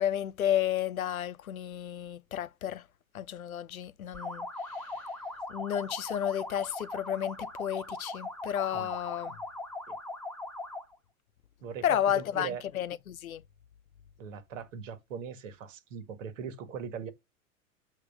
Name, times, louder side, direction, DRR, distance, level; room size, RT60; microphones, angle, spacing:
voice 1, 0.0-2.9 3.1-5.1 5.5-9.4 11.8-13.4, left 10 dB, 85° left, 0.7 m, -32 dB
sound 1, 4.1-10.9, left 2 dB, 5° left, 1.3 m, -40 dB
voice 2, 12.1-12.6 14.2-17.1, right 6 dB, 65° right, 1.8 m, -40 dB
8.2 x 3.0 x 6.0 m
hypercardioid pair, 105°, 41 cm